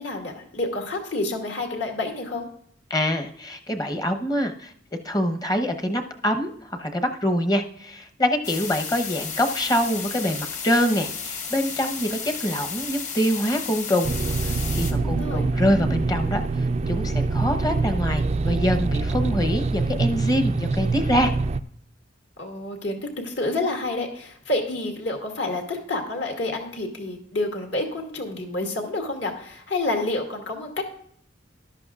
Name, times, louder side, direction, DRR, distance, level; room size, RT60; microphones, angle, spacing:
voice 1, 0.0-2.5 15.0-15.5 22.4-23.0 23.2-30.8, left 2 dB, 60° left, 2 dB, 2.1 m, -29 dB
voice 2, 2.9-4.7 5.0-14.1 14.7-21.3, equal, 20° left, 5 dB, 0.9 m, -25 dB
sound 1, 8.4-14.9, left 6 dB, 40° left, 1.4 m, -33 dB
sound 2, 14.0-21.6, right 3 dB, 35° right, 0.3 m, -25 dB
13.5 x 11.5 x 2.4 m, 0.66 s
head